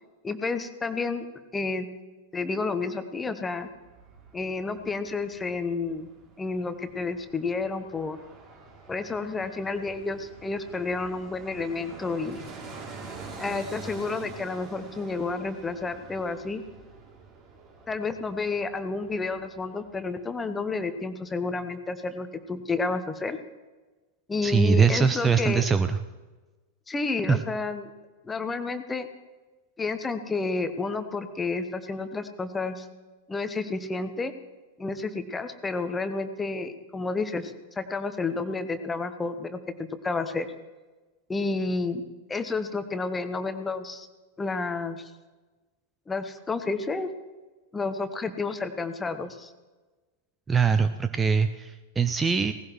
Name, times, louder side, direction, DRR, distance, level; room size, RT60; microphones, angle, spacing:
voice 1, 0.2-1.3 1.5-1.9 2.3-3.7 4.3-6.1 6.4-8.2 8.9-12.5 13.4-16.6 17.9-23.4 24.3-25.6 26.9-27.9 28.2-29.1 29.8-32.9 33.3-34.3 34.8-40.5 41.3-42.0 42.3-44.1 44.4-45.1 46.1-47.1 47.7-49.5, left 3 dB, 15° left, 10 dB, 1.0 m, -30 dB
Fixed-wing aircraft airplane, 3.6-20.5 20.8-20.9, right 3 dB, 35° right, 2.9 m, -46 dB
voice 2, 24.4-26.0 27.3-27.4 50.5-52.5, right 5 dB, 15° right, 10 dB, 0.5 m, -22 dB
18.5 x 15.5 x 3.1 m, 1.2 s
figure-of-eight pair, 90°, 0 cm